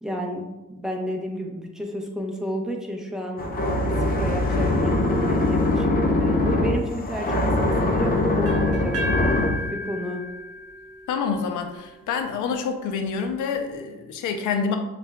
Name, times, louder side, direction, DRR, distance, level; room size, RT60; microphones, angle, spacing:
voice 1, 0.0-3.4 4.0-8.9 9.7-10.2, equal, ahead, 0 dB, 0.8 m, -31 dB
sound 1, 3.4-9.7, left 2 dB, 30° left, 0.6 m, -22 dB
sound 2, 8.4-12.3, equal, 50° right, 0.8 m, -33 dB
voice 2, 11.1-14.8, left 5 dB, 80° left, 6 dB, 0.6 m, -27 dB
6.7 x 2.5 x 2.2 m, 1.0 s
cardioid pair, 90°, 30 cm